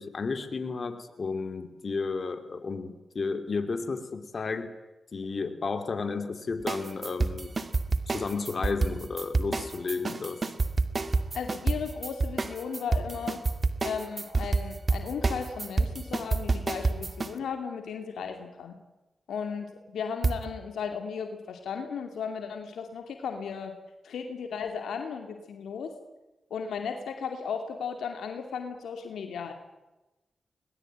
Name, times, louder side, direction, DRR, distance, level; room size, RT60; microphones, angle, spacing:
voice 1, 0.0-4.7 5.1-7.6 8.1-10.4, left 4 dB, 60° left, 8 dB, 3.1 m, -32 dB
sound 1, 6.7-17.3 20.2-20.4, right 3 dB, 45° right, 2.4 m, -28 dB
voice 2, 11.3-13.4 13.8-18.8 19.3-23.7 24.0-25.9 26.5-29.5, left 6 dB, 85° left, 5 dB, 2.6 m, -35 dB
22.0 x 21.0 x 9.2 m, 1.0 s
supercardioid pair, 40°, 0 cm